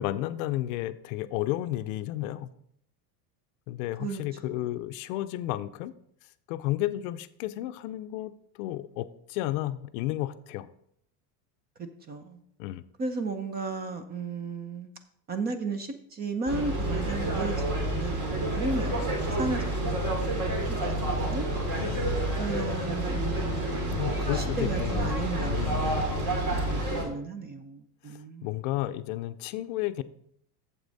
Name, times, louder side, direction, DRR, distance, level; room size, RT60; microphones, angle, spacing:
voice 1, 0.0-2.5 3.7-5.9 6.5-10.7 12.6-12.8 21.8-22.2 23.9-26.1 28.1-30.0, left 15 dB, 55° left, 12 dB, 0.6 m, -32 dB
voice 2, 4.0-4.7 11.8-12.4 13.0-14.9 15.3-21.5 21.7-22.1 22.4-24.0 24.3-28.6, right 3 dB, 20° right, 9 dB, 0.5 m, -35 dB
sound 1, 16.5-27.0, right 1 dB, 40° right, 2.7 m, -29 dB
8.1 x 7.4 x 4.0 m, 0.69 s
supercardioid pair, 140°, 49 cm